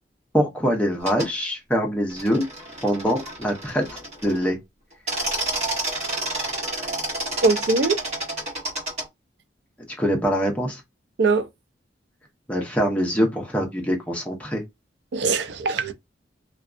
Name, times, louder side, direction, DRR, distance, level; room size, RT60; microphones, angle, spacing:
voice 1, 0.3-2.4 2.8-3.8 4.2-4.6 10.0-10.8 12.5-14.6, equal, 10° left, 0.6 m, -23 dB
sound 1, 1.0-1.3 2.1-4.5 4.9-9.0, right 2 dB, 35° right, 1.2 m, -30 dB
voice 2, 7.4-8.0 11.2-11.5 15.1-15.9, right 3 dB, 65° right, 0.4 m, -21 dB
2.6 x 2.2 x 2.4 m
head